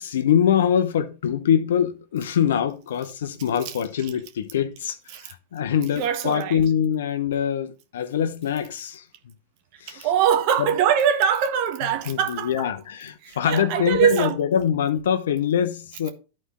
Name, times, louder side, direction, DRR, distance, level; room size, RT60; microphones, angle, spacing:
voice 1, 0.0-9.0 9.8-10.1 10.6-10.7 12.1-16.1, left 9 dB, 75° left, 0.9 m, -24 dB
voice 2, 5.9-6.6 9.9-12.7 13.2-14.4, right 8 dB, 55° right, 1.4 m, -22 dB
11.0 x 4.3 x 3.7 m
hypercardioid pair, 100°, 0 cm